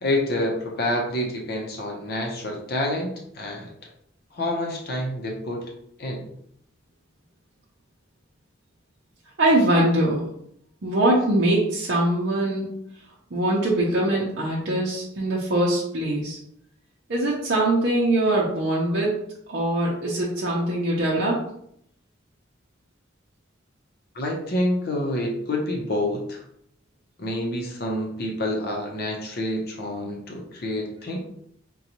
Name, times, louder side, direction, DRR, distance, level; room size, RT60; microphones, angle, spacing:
voice 1, 0.0-3.7 4.3-5.6 6.0-6.3 24.1-26.4 27.2-31.2, left 1 dB, 55° left, 1 dB, 0.6 m, -28 dB
voice 2, 9.4-10.2 10.8-12.7 13.3-16.4 17.1-21.4, right 1 dB, 60° right, -5 dB, 0.6 m, -22 dB
3.9 x 2.2 x 2.9 m, 0.71 s
head